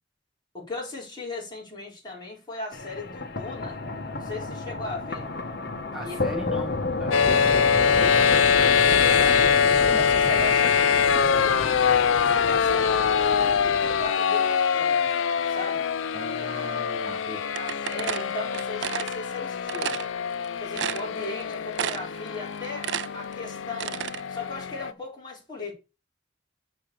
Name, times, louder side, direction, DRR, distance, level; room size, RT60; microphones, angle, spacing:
voice 1, 0.5-3.8 4.1-5.3 6.0-6.2 7.9-9.5 9.8-11.6 12.1-15.1 15.4-15.9 16.3-16.6 17.0-20.0 20.6-24.0 24.3-25.7, left 3 dB, 20° left, 4.3 m, -37 dB
sound 1, 2.7-14.1, left 2 dB, 55° left, 1.3 m, -31 dB
voice 2, 5.9-7.3 9.9-10.0 16.1-17.4, right 1 dB, 5° right, 1.2 m, -38 dB
sound 2, 7.1-24.9, left 7 dB, 85° left, 0.5 m, -23 dB
sound 3, 17.6-19.2 19.7-20.1 20.4-20.5 20.8-21.4 21.8-22.2 22.5-24.2, right 9 dB, 65° right, 0.4 m, -31 dB
7.4 x 5.8 x 6.8 m
head